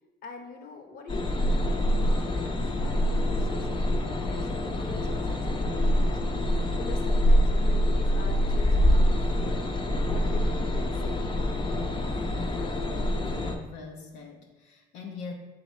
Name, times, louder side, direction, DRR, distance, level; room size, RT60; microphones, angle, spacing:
voice 1, 0.2-6.1 6.8-9.6 10.1-11.4 11.7-12.1, left 3 dB, 60° left, 4 dB, 0.9 m, -44 dB
sound 1, 1.1-13.6, equal, 30° left, 0.7 m, -25 dB
voice 2, 13.2-15.3, left 4 dB, 90° left, 1 dB, 0.8 m, -42 dB
7.3 x 3.5 x 4.2 m, 1.1 s
cardioid pair, 110°, 17 cm